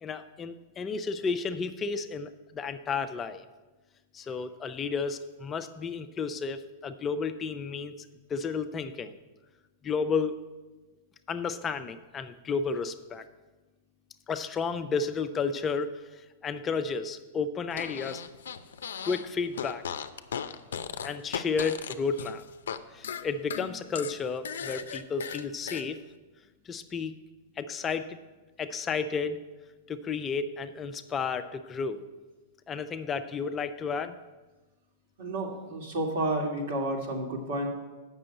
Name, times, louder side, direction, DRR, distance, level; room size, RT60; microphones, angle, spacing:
voice 1, 0.0-3.4 4.1-9.1 9.8-10.4 11.3-13.2 14.3-18.2 19.0-19.8 21.0-22.4 22.9-26.0 26.6-27.1 27.6-28.2 28.6-29.4 29.9-32.0 32.7-34.2, left 5 dB, 25° left, 9 dB, 0.5 m, -32 dB
Fart, 17.7-19.3 19.5-22.8 23.0-25.8, left 7 dB, 90° left, 0.5 m, -37 dB
voice 2, 35.2-37.7, right 1 dB, 70° right, 1 dB, 2.2 m, -31 dB
7.5 x 6.2 x 7.8 m, 1.2 s
hypercardioid pair, 130°, 0 cm